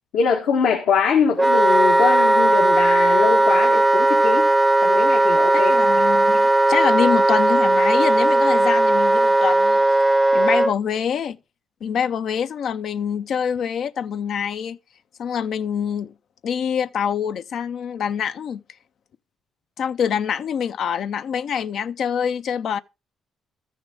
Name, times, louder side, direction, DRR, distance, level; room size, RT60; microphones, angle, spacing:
voice 1, 0.1-4.5 4.8-5.7, left 6 dB, 85° left, 1.5 m, -22 dB
Wind instrument woodwind instrument, 1.4-10.7, right 2 dB, 15° right, 0.5 m, -17 dB
voice 2, 5.5-9.8 10.3-11.4 11.8-14.8 15.2-16.1 16.4-18.6 19.8-22.8, left 8 dB, 65° left, 0.4 m, -25 dB
13.5 x 6.4 x 3.7 m
cardioid pair, 90°, 0 cm